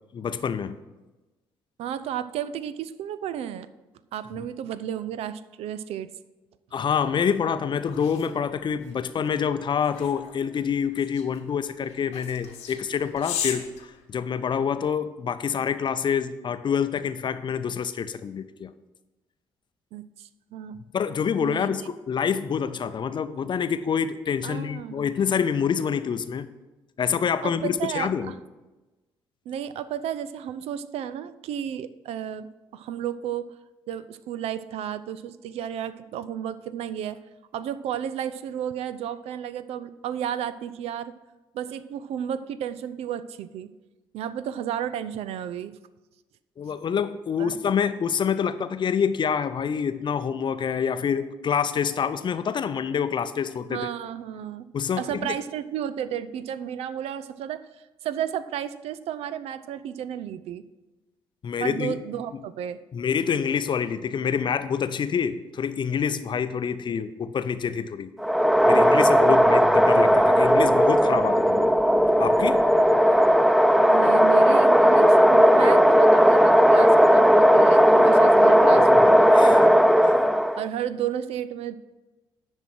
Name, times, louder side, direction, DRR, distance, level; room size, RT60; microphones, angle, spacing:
voice 1, 0.1-0.8 4.3-4.5 6.7-13.7 14.1-18.7 20.9-26.5 27.0-28.3 46.6-53.8 54.7-55.4 61.4-61.9 62.9-68.1 68.7-71.7 72.2-72.6 78.7-79.7 80.0-80.2, left 7 dB, 40° left, 12 dB, 0.6 m, -27 dB
voice 2, 1.8-3.7 4.1-6.1 19.9-20.8 21.3-21.9 24.4-25.1 27.4-28.3 29.5-33.5 33.9-37.2 37.5-41.1 41.5-43.7 44.1-45.8 47.4-47.6 53.7-54.7 55.0-60.7 61.6-62.8 73.9-79.2 80.6-81.8, right 10 dB, 55° right, 13 dB, 0.5 m, -33 dB
sound 1, 7.3-14.7, left 8 dB, 65° left, 1.1 m, -38 dB
sound 2, 68.2-80.7, equal, ahead, 0.4 m, -17 dB
10.5 x 6.2 x 6.1 m, 1.1 s
figure-of-eight pair, 45°, 12 cm